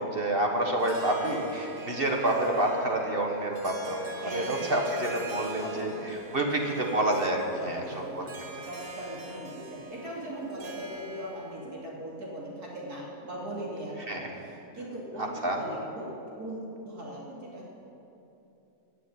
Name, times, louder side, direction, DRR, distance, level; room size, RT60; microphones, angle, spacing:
voice 1, 0.0-4.0 4.3-5.9 6.3-7.8 8.1-8.3 14.1-14.2 15.2-15.6, right 1 dB, 35° right, 1 dB, 1.4 m, -28 dB
Harp, 0.6-11.6, right 1 dB, 85° right, 2.3 m, -42 dB
voice 2, 4.2-4.5 5.6-6.1 6.7-6.8 7.6-17.7, right 1 dB, 70° right, -4 dB, 3.2 m, -39 dB
16.5 x 6.9 x 9.8 m, 2.9 s
omnidirectional pair, 1.7 m